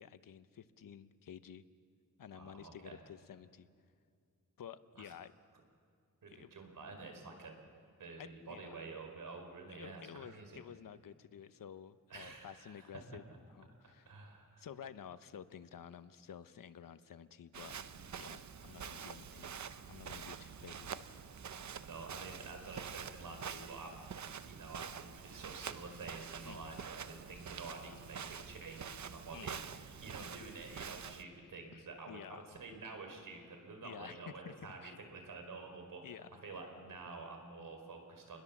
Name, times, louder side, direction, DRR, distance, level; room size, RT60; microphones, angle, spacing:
voice 1, 0.0-1.6 2.2-3.7 4.6-5.3 6.3-6.5 8.2-8.7 9.7-13.2 13.5-14.1 14.6-20.9 26.5-26.8 29.3-29.7 30.2-30.4 31.7-32.6 33.8-35.0 36.0-36.4, left 8 dB, 85° left, 12 dB, 0.9 m, -52 dB
voice 2, 2.3-3.0 4.9-5.1 6.2-7.6 8.0-10.6 12.1-12.8 13.8-14.6 21.9-24.1 24.4-29.6 30.0-36.0 36.4-38.4, right 3 dB, 85° right, 4 dB, 4.7 m, -49 dB
Walk footsteps, 17.5-31.2, right 7 dB, 60° right, 0.8 m, -47 dB
28.0 x 21.0 x 7.3 m, 2.3 s
wide cardioid pair, 135°, 32 cm